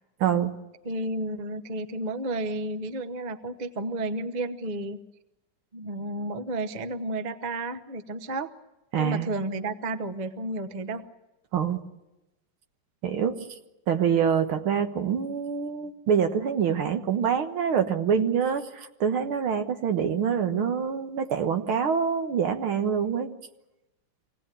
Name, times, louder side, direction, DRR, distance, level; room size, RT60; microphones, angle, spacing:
voice 1, 0.2-0.5 8.9-9.3 11.5-11.8 13.0-13.4 13.9-23.3, right 7 dB, 70° right, 7 dB, 2.1 m, -25 dB
voice 2, 0.8-5.0 5.7-8.5 9.0-11.1 20.1-20.7, right 2 dB, 40° right, 9 dB, 0.6 m, -32 dB
25.0 x 18.0 x 9.1 m, 1.0 s
omnidirectional pair, 2.4 m